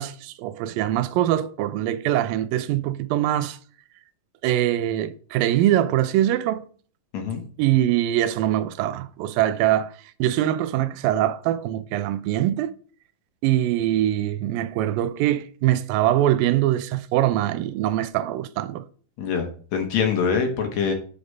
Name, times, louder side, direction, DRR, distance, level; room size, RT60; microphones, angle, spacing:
voice 1, 0.0-3.6 4.4-6.7 7.6-9.9 10.2-12.7 13.4-18.8, right 13 dB, 85° right, 2.4 m, -23 dB
voice 2, 19.2-20.9, left 6 dB, 60° left, 2.4 m, -24 dB
8.2 x 5.1 x 5.3 m
omnidirectional pair, 4.0 m